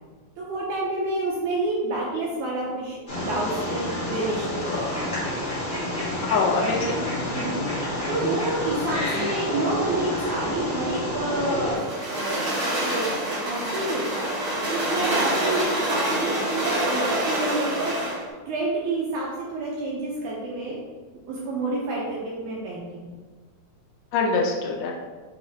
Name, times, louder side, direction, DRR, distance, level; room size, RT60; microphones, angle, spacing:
voice 1, 0.4-5.3 5.6-5.7 7.4-7.7 8.1-14.3 14.7-18.2 18.5-20.8 21.3-23.1, right 2 dB, 80° right, -4 dB, 1.8 m, -29 dB
Wild animals, 3.1-11.8, left 1 dB, 50° left, 0.9 m, -29 dB
voice 2, 6.2-7.0 8.9-9.0 24.1-24.9, left 4 dB, 80° left, 0 dB, 2.2 m, -24 dB
sound 1, 11.7-18.2, right 1 dB, 55° right, 1.0 m, -26 dB
6.6 x 2.9 x 2.7 m, 1.4 s
omnidirectional pair, 4.0 m